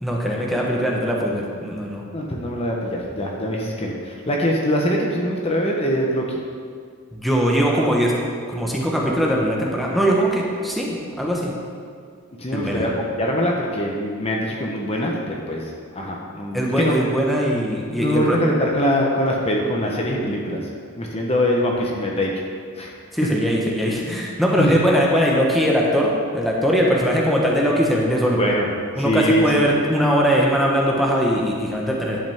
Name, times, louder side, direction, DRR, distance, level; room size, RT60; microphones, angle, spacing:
voice 1, 0.0-2.0 7.1-8.1 8.5-11.5 12.5-12.8 16.5-18.4 23.1-28.4 29.0-32.2, equal, ahead, -3 dB, 1.1 m, -20 dB
voice 2, 2.1-6.4 12.4-15.6 15.9-16.9 17.9-20.6 21.0-22.3 22.8-22.9 24.6-24.7 28.2-28.7 29.0-29.5, equal, 30° left, -1 dB, 1.0 m, -23 dB
10.5 x 8.2 x 3.6 m, 2.1 s
head